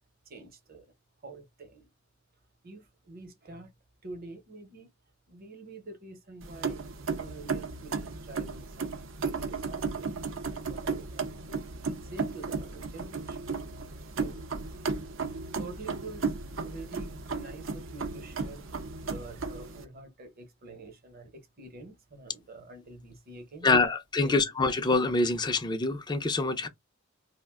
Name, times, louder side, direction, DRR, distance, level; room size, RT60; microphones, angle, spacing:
voice 1, 0.3-0.9 1.2-1.9 2.6-3.7 4.0-4.9 5.3-11.6 12.0-13.5 14.2-14.5 15.6-18.7 19.0-23.7 24.2-24.3, right 2 dB, 50° right, 0.9 m, -47 dB
sound 1, 6.4-19.8, right 4 dB, 70° right, 0.6 m, -35 dB
voice 2, 23.6-26.7, left 3 dB, 20° left, 0.4 m, -25 dB
2.5 x 2.1 x 3.5 m
head